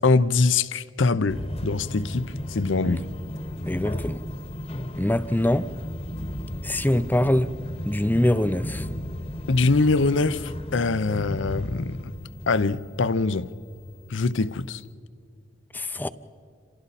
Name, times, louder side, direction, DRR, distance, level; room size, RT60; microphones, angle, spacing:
voice 1, 0.0-3.0 9.5-12.1 12.5-13.5 14.1-14.8, left 3 dB, 75° left, 0.7 m, -23 dB
sound 1, 1.3-14.9, left 1 dB, 30° left, 1.1 m, -35 dB
voice 2, 3.6-4.2 4.9-5.7 6.6-7.5 7.8-8.9 15.7-16.1, left 1 dB, 10° left, 0.5 m, -24 dB
29.0 x 27.5 x 4.2 m
head